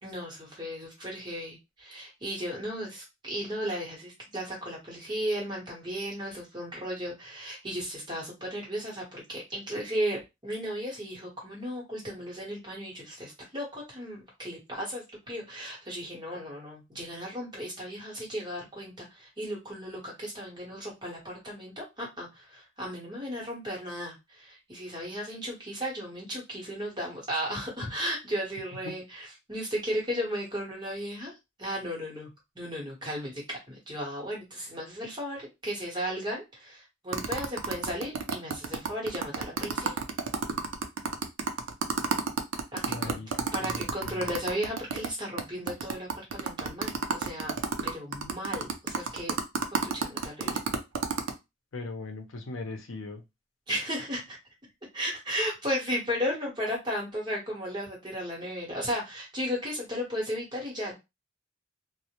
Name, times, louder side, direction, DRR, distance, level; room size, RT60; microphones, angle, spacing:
voice 1, 0.0-31.3 31.6-32.3 32.5-39.9 42.7-43.2 43.5-47.5 47.8-49.3 49.9-50.6 53.7-54.4 54.9-60.9, equal, 25° right, 1.0 m, -35 dB
sound 1, 37.1-45.1 45.4-45.5 45.7-51.3, right 5 dB, 85° right, 0.4 m, -30 dB
voice 2, 42.9-44.3 51.7-53.2, left 3 dB, 85° left, 0.6 m, -39 dB
2.1 x 2.1 x 2.8 m
head